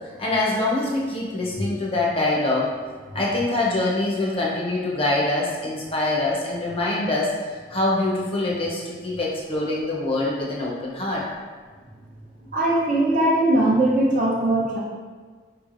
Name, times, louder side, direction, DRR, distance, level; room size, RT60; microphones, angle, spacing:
voice 1, 0.2-2.7 3.1-11.3, left 2 dB, 30° left, -4 dB, 0.7 m, -24 dB
voice 2, 12.5-14.8, right 1 dB, 45° right, -4 dB, 0.8 m, -20 dB
4.8 x 3.1 x 2.5 m, 1.5 s
head